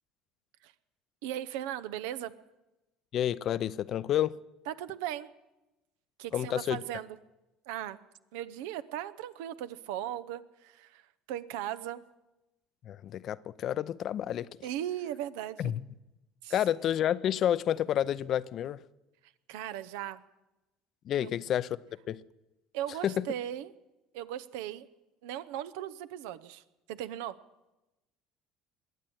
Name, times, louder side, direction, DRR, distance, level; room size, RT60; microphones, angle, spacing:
voice 1, 1.2-2.3 4.7-5.3 6.2-7.2 7.7-8.0 8.3-11.0 11.3-12.0 14.6-15.7 16.4-16.5 19.5-20.2 21.2-21.3 22.7-23.7 24.1-24.9 25.2-26.6 26.9-27.4, right 12 dB, 75° right, 0.7 m, -37 dB
voice 2, 3.1-4.4 6.3-6.8 12.8-14.5 15.6-15.8 16.5-18.8 21.0-21.8 22.1-22.2 23.0-23.3, left 10 dB, 55° left, 0.6 m, -29 dB
21.5 x 8.4 x 7.8 m
hypercardioid pair, 70°, 0 cm